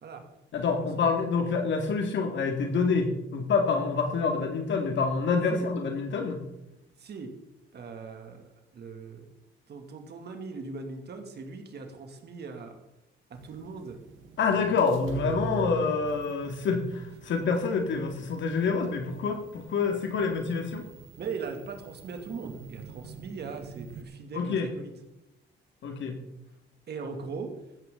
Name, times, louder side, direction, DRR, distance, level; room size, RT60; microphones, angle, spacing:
voice 1, 0.5-6.4 14.4-20.8 24.3-24.7 25.8-26.2, left 4 dB, 70° left, 4 dB, 2.3 m, -27 dB
voice 2, 7.7-9.3 9.7-12.8 13.3-14.0 14.5-14.8 21.2-24.9 26.9-27.5, right 4 dB, 55° right, 4 dB, 2.6 m, -39 dB
sound 1, 13.4-24.0, right 3 dB, 75° right, 1.6 m, -43 dB
15.0 x 13.0 x 3.9 m, 0.90 s
cardioid pair, 90°, 20 cm